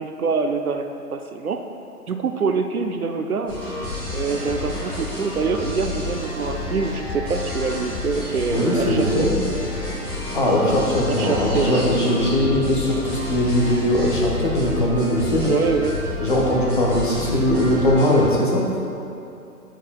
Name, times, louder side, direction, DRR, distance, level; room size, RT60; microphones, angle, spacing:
voice 1, 0.0-1.6 2.1-3.7 4.1-9.1 11.1-11.7 15.5-16.1, right 5 dB, 65° right, 6 dB, 0.6 m, -25 dB
sound 1, 3.5-18.3, left 2 dB, 5° left, 1.1 m, -30 dB
sound 2, 8.2-9.1 9.7-9.8 10.8-13.1 14.1-14.2, right 1 dB, 25° right, 1.5 m, -39 dB
voice 2, 8.5-9.3 10.3-15.5 16.2-18.7, left 1 dB, 35° left, -3 dB, 0.9 m, -20 dB
8.1 x 7.2 x 2.3 m, 2.8 s
figure-of-eight pair, 145°, 47 cm